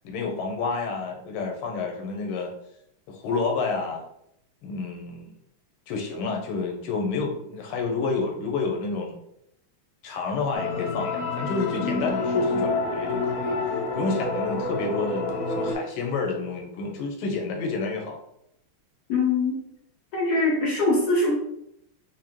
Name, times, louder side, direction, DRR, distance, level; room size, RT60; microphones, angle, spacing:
voice 1, 0.0-2.5 3.1-4.0 4.6-5.3 5.9-9.2 10.0-18.2, left 4 dB, 90° left, 1 dB, 1.6 m, -29 dB
sound 1, 10.5-15.8, left 3 dB, 75° left, 1.3 m, -28 dB
voice 2, 19.1-19.6 20.1-21.3, left 2 dB, 55° left, -5 dB, 1.2 m, -22 dB
4.9 x 2.1 x 3.0 m, 0.76 s
omnidirectional pair, 2.4 m